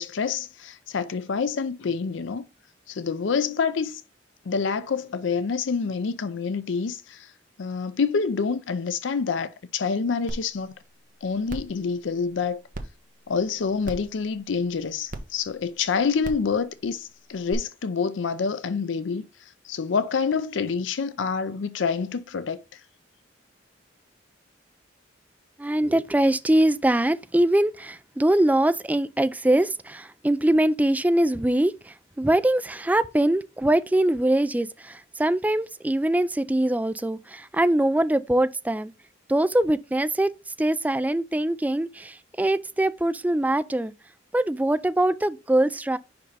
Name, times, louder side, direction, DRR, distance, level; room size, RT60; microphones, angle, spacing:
voice 1, 0.0-2.4 2.9-4.0 4.5-7.3 7.6-10.7 11.2-12.6 13.3-19.2 19.6-22.6, left 5 dB, 75° left, 0.5 m, -27 dB
sound 1, 10.3-10.4 10.8-10.9 11.5-11.7 12.7-12.8 13.8-14.1 15.1-15.2 16.2-16.5 17.5-17.6, right 1 dB, 45° right, 1.0 m, -34 dB
voice 2, 25.6-38.9 39.3-40.3 40.6-43.9 44.3-46.0, right 1 dB, 10° right, 0.3 m, -23 dB
5.4 x 5.3 x 4.0 m
head